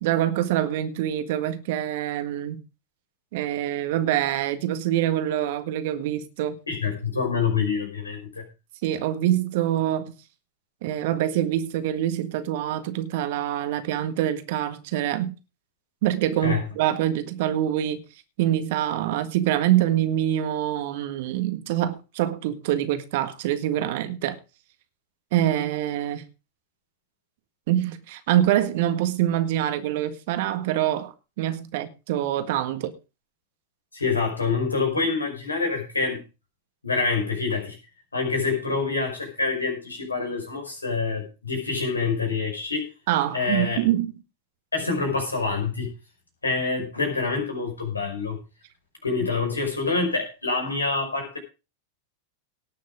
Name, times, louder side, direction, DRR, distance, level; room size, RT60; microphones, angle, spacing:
voice 1, 0.0-2.6 3.3-6.6 8.8-10.1 10.8-15.3 16.0-18.0 18.4-24.4 25.3-26.2 27.7-32.9 43.1-44.1, right 12 dB, 50° right, 1.6 m, -25 dB
voice 2, 6.7-8.4 16.4-16.6 33.9-36.2 36.8-37.8 38.1-42.9 43.3-43.8 44.7-45.9 46.4-48.4 49.0-51.4, left 4 dB, 80° left, 5.2 m, -26 dB
18.0 x 6.5 x 4.9 m
figure-of-eight pair, 90°, 0 cm